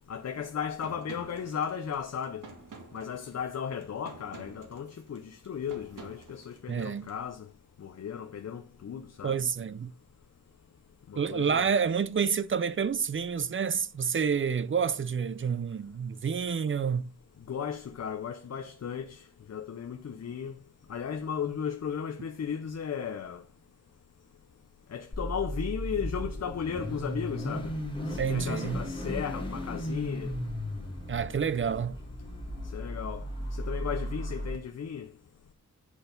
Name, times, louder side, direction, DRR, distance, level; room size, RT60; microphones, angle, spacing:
voice 1, 0.1-2.5 2.9-7.5 7.8-9.4 11.1-11.7 17.5-19.2 19.5-20.6 20.9-23.4 24.9-27.7 28.1-30.3 32.7-33.2 33.5-35.1, left 7 dB, 50° left, 0.6 m, -35 dB
sound 1, 0.8-7.1, right 3 dB, 75° right, 1.9 m, -49 dB
voice 2, 6.7-7.1 9.2-9.9 11.2-17.1 28.2-28.8 31.1-32.0, right 6 dB, 40° right, 0.5 m, -29 dB
Car / Idling / Accelerating revving vroom, 25.1-34.6, equal, 15° left, 1.6 m, -36 dB
9.8 x 4.5 x 5.1 m
wide cardioid pair, 150°, 32 cm